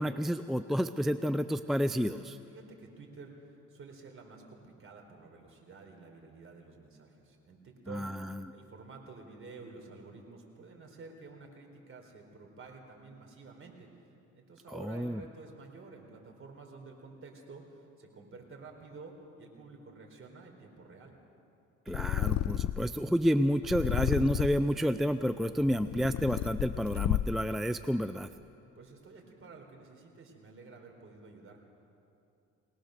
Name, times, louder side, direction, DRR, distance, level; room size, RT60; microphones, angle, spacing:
voice 1, 0.0-2.4 7.9-8.4 14.7-15.2 21.9-28.3, equal, ahead, 11 dB, 0.4 m, -30 dB
voice 2, 2.5-21.1 28.8-31.6, right 3 dB, 45° right, 2 dB, 4.2 m, -51 dB
Purr, 21.9-23.0 23.6-24.7 25.4-27.5, left 13 dB, 65° left, 0.5 m, -32 dB
22.5 x 19.0 x 6.6 m, 2.8 s
cardioid pair, 90°, 30 cm